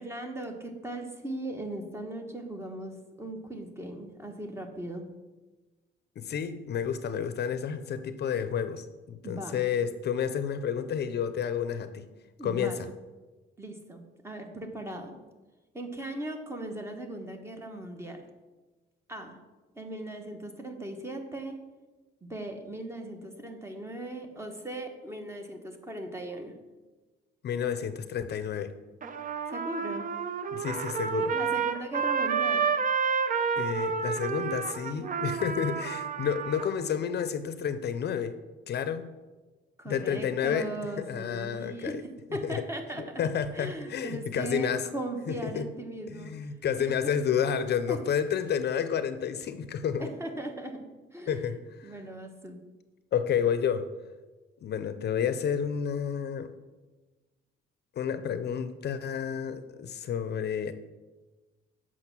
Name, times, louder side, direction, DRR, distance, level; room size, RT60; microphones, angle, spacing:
voice 1, 0.0-5.0 9.2-9.6 12.4-12.8 13.6-15.2 15.7-18.2 19.1-19.4 19.8-21.6 22.2-26.6 29.5-30.1 31.3-32.7 39.8-42.0 42.3-43.2 43.5-46.3 46.8-47.1 47.9-48.0 50.0-50.8 51.1-51.4 51.8-52.6, right 1 dB, 15° right, 5 dB, 1.1 m, -38 dB
voice 2, 6.2-12.1 12.4-12.8 27.4-28.7 30.5-31.3 33.6-38.3 38.7-39.0 39.9-40.7 41.1-42.0 42.4-42.6 43.0-44.9 45.3-45.7 46.1-50.1 51.3-51.9 53.1-53.9 54.6-56.5 58.0-60.7, left 8 dB, 55° left, 11 dB, 0.6 m, -30 dB
Trumpet, 29.0-36.7, right 6 dB, 40° right, 0.6 m, -30 dB
7.8 x 6.1 x 6.0 m, 1.2 s
cardioid pair, 120°, 21 cm